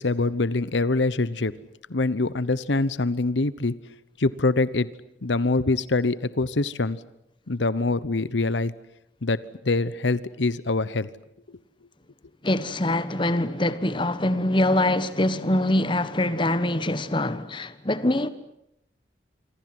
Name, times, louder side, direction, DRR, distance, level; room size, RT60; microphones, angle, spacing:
voice 1, 0.0-1.5 1.9-3.7 4.2-4.9 5.2-7.0 7.5-8.7 9.2-9.4 9.6-11.1, left 3 dB, 90° left, 1.0 m, -24 dB
voice 2, 12.4-18.3, left 1 dB, 25° left, 1.3 m, -24 dB
27.5 x 25.0 x 7.8 m
head